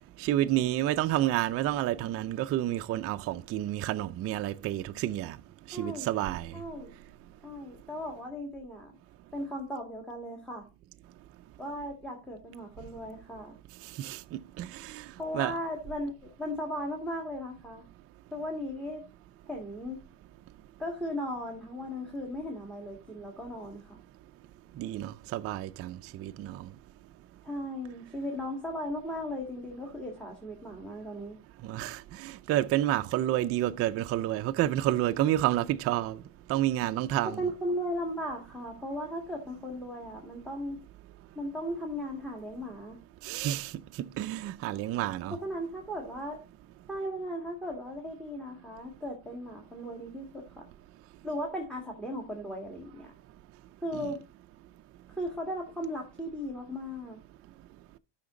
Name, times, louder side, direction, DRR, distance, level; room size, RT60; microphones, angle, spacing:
voice 1, 0.2-5.4 5.7-6.6 14.0-15.1 15.3-15.5 24.8-26.7 31.6-36.2 36.5-37.4 43.2-43.7 44.0-45.4 53.9-54.1, right 13 dB, 35° right, 0.4 m, -30 dB
voice 2, 5.7-6.1 6.5-6.9 7.4-8.9 9.3-10.7 11.6-13.6 15.2-17.8 18.3-19.0 19.5-20.0 20.8-24.0 27.4-31.4 37.2-40.8 41.4-43.0 45.3-46.4 46.9-50.6 51.2-53.1 53.8-54.2 55.1-57.2, equal, ahead, 1.7 m, -37 dB
12.0 x 5.9 x 3.7 m
cardioid pair, 140°, 46 cm